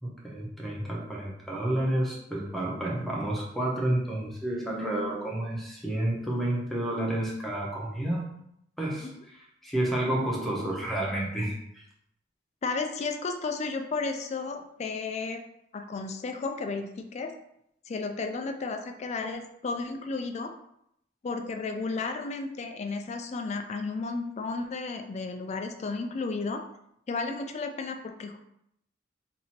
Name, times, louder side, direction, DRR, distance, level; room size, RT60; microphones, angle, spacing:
voice 1, 0.0-8.3 8.8-9.1 9.6-11.6, right 1 dB, ahead, -4 dB, 0.8 m, -30 dB
voice 2, 12.6-15.4 15.7-17.3 17.9-20.5 21.2-26.6 27.1-28.4, left 4 dB, 35° left, 6 dB, 0.3 m, -33 dB
2.8 x 2.6 x 4.2 m, 0.75 s
head